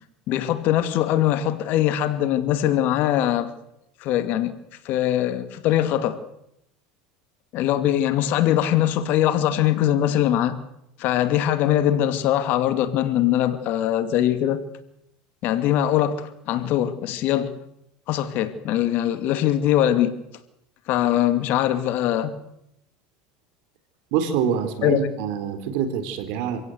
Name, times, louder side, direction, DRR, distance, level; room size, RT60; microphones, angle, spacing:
voice 1, 0.3-3.5 4.0-4.6 4.8-6.2 7.5-10.6 11.0-14.6 15.4-17.5 18.1-20.2 20.9-22.3 24.8-25.0, left 12 dB, 55° left, 2.4 m, -22 dB
voice 2, 24.1-26.6, right 8 dB, 70° right, 3.9 m, -25 dB
26.5 x 16.5 x 8.0 m
supercardioid pair, 115°, 4 cm